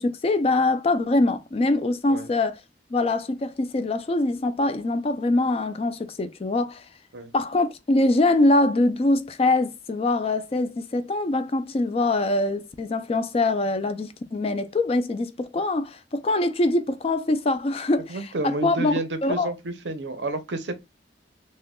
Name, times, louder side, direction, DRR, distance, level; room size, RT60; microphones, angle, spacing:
voice 1, 0.0-2.6 2.9-6.8 7.3-18.9 19.2-19.5, left 2 dB, 35° left, 0.4 m, -23 dB
voice 2, 18.1-20.8, right 2 dB, 85° right, 0.8 m, -30 dB
6.3 x 2.2 x 2.2 m
head